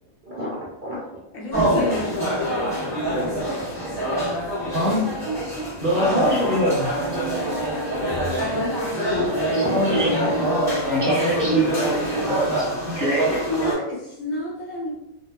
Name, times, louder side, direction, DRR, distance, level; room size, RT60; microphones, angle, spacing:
voice 1, 0.3-1.0 3.1-3.3 3.8-3.9 4.8-4.9 9.1-9.2 9.6-10.4, equal, 70° right, -6 dB, 0.4 m, -30 dB
voice 2, 1.3-4.2 4.5-4.7 6.3-6.5 8.5-8.8 13.5-14.9, left 2 dB, 70° left, -4 dB, 1.0 m, -31 dB
sound 1, 1.5-13.7, right 1 dB, ahead, 1.1 m, -25 dB
voice 3, 4.6-5.1 5.8-7.4 9.5-10.1 10.9-13.4, equal, 15° right, -8 dB, 0.7 m, -24 dB
2.6 x 2.2 x 2.3 m, 0.84 s
omnidirectional pair, 1.5 m